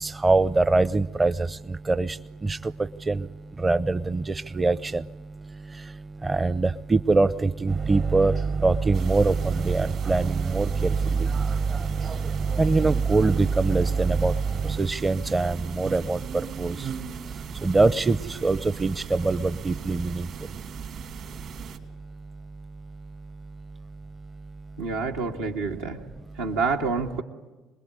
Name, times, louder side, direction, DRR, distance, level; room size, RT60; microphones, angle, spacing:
voice 1, 0.0-1.5 1.9-2.2 2.4-2.6 3.1-3.3 3.6-5.0 6.2-8.3 8.6-11.3 12.6-14.3 14.8-16.2 16.6-16.8 17.6-20.3, right 3 dB, 25° right, 14 dB, 0.8 m, -23 dB
sound 1, 7.7-14.8, right 5 dB, 45° right, 1.1 m, -27 dB
sound 2, 8.9-21.8, right 7 dB, 60° right, 3.4 m, -39 dB
voice 2, 24.8-26.0 26.4-27.2, right 4 dB, 85° right, 0 dB, 2.0 m, -27 dB
26.5 x 21.0 x 9.8 m, 1.2 s
hypercardioid pair, 60°, 0 cm